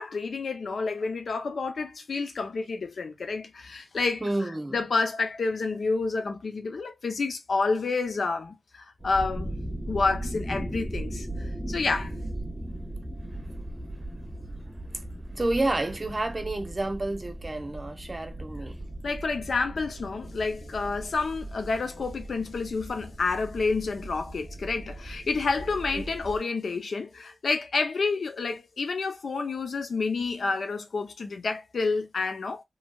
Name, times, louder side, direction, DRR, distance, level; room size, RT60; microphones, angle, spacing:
voice 1, 0.0-4.2 4.7-9.5 9.9-12.1 19.0-32.6, left 4 dB, 80° left, 0.6 m, -29 dB
voice 2, 4.2-4.8 12.4-12.5 13.3-13.4 14.8-18.8 25.9-26.1, right 2 dB, 35° right, 0.8 m, -30 dB
sound 1, 9.0-26.4, right 1 dB, ahead, 1.2 m, -38 dB
3.2 x 2.6 x 2.3 m
cardioid pair, 55°, 0 cm